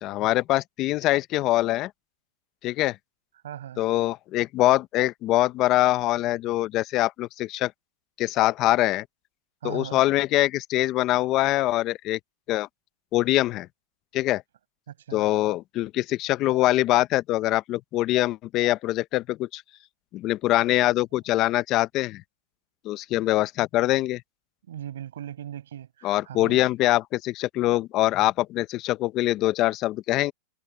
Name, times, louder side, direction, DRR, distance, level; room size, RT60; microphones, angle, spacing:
voice 1, 0.0-1.9 2.6-3.0 3.8-7.7 8.2-9.0 9.6-12.2 12.5-12.7 13.1-13.7 14.1-14.4 15.1-19.6 20.1-22.2 22.8-24.2 26.0-30.3, left 16 dB, 35° left, 0.6 m, -23 dB
voice 2, 3.4-3.8 9.6-10.0 14.9-15.2 24.7-26.7, right 11 dB, 90° right, 5.8 m, -38 dB
supercardioid pair, 145°, 0 cm